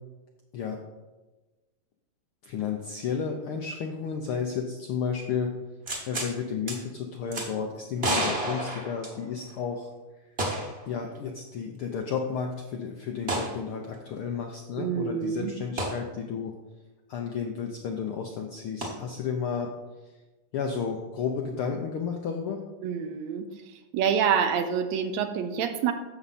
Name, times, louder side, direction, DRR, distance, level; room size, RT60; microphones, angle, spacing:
voice 1, 2.4-5.5 6.1-9.9 10.3-10.4 10.9-16.5 17.1-19.7 20.0-20.1 20.5-22.6, left 6 dB, 75° left, 3 dB, 1.2 m, -32 dB
sound 1, 5.9-6.3 6.7-6.8 7.3-7.5 8.0-9.5 10.4-10.8 11.1-11.2 13.3-13.5 15.8-16.0 18.8-18.9, right 1 dB, 30° right, 1.2 m, -30 dB
voice 2, 14.8-15.5 22.8-23.5 23.9-25.9, right 7 dB, 75° right, 8 dB, 1.9 m, -27 dB
10.5 x 7.3 x 4.2 m, 1.2 s
omnidirectional pair, 3.4 m